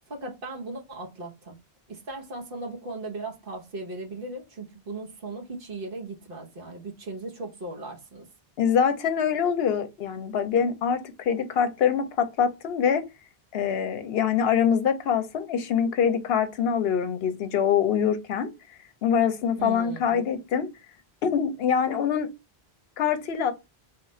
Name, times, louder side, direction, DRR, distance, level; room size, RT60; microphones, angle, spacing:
voice 1, 0.1-1.6 1.9-8.3 19.6-20.2, right 2 dB, 60° right, 1.2 m, -37 dB
voice 2, 8.6-13.0 13.5-18.5 19.0-20.7 21.2-22.3 23.0-23.5, left 7 dB, 75° left, 0.8 m, -24 dB
3.5 x 2.4 x 4.1 m
omnidirectional pair, 1.1 m